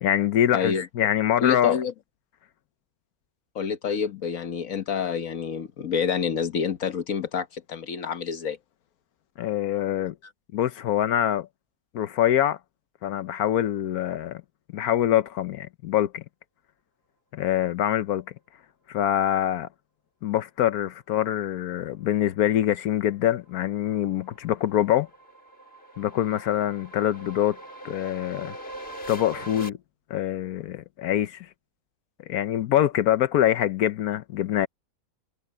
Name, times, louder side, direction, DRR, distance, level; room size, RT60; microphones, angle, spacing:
voice 1, 0.0-1.8 9.4-10.1 10.5-11.5 11.9-12.6 13.0-14.4 14.7-16.2 17.3-18.2 18.9-19.7 20.2-25.1 26.0-27.6 27.8-28.5 29.1-29.8 30.1-31.5 32.3-34.7, left 11 dB, 80° left, 1.2 m, -24 dB
voice 2, 0.5-0.9 1.4-1.9 3.5-8.6, left 7 dB, 65° left, 1.4 m, -28 dB
sound 1, 23.1-29.7, right 1 dB, 40° left, 2.6 m, -42 dB
omnidirectional pair, 1.6 m